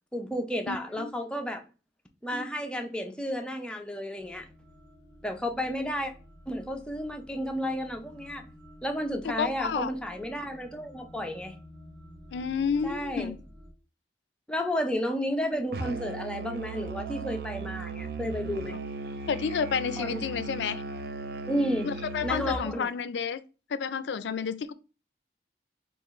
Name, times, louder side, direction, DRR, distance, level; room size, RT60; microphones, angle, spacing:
voice 1, 0.1-1.6 2.2-4.5 5.2-6.1 6.5-8.5 8.8-11.5 12.8-13.3 14.5-18.8 20.0-20.2 21.5-21.9 22.2-22.9, equal, 5° left, 0.5 m, -32 dB
voice 2, 0.7-1.1 9.4-9.9 12.3-13.4 19.3-20.8 21.8-23.4 23.7-24.7, left 6 dB, 80° left, 0.4 m, -30 dB
sound 1, 4.2-13.7, equal, 20° right, 1.0 m, -51 dB
Musical instrument, 15.7-22.7, right 3 dB, 60° right, 0.4 m, -37 dB
5.8 x 2.4 x 3.0 m
head